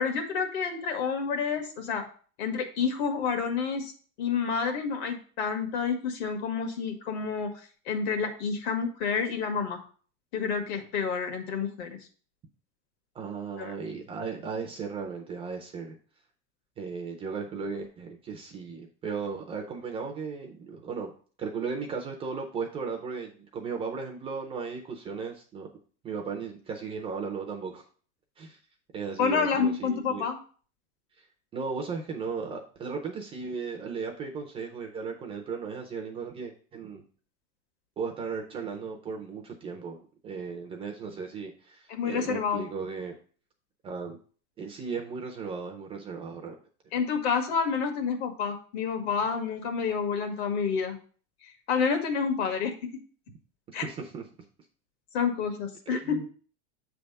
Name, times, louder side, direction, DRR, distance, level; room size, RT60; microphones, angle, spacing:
voice 1, 0.0-2.0 2.4-3.9 4.2-7.5 7.8-9.8 10.3-12.0 13.6-13.7 29.2-30.4 41.9-42.6 46.9-51.0 51.4-52.7 53.7-53.8 55.1-56.2, left 6 dB, 65° left, 5 dB, 1.5 m, -29 dB
voice 2, 13.1-16.0 16.8-21.1 21.4-25.7 26.0-27.8 28.4-28.6 28.9-30.2 31.5-37.0 38.0-43.1 43.8-44.2 44.6-46.6 53.8-54.2 55.9-56.3, right 5 dB, 15° right, 2 dB, 0.4 m, -36 dB
7.5 x 3.4 x 5.1 m, 0.42 s
supercardioid pair, 170°, 35 cm